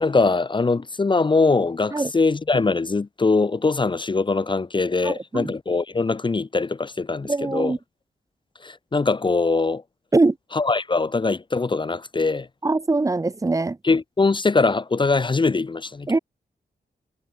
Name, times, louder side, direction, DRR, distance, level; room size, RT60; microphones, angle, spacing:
voice 1, 0.0-7.7 8.6-9.8 10.5-12.5 13.8-16.1, left 3 dB, 25° left, 0.7 m, -22 dB
voice 2, 5.0-5.5 7.3-7.8 10.1-10.4 12.6-13.8 16.1-16.2, right 3 dB, 20° right, 0.7 m, -22 dB
wide cardioid pair, 140°, 18 cm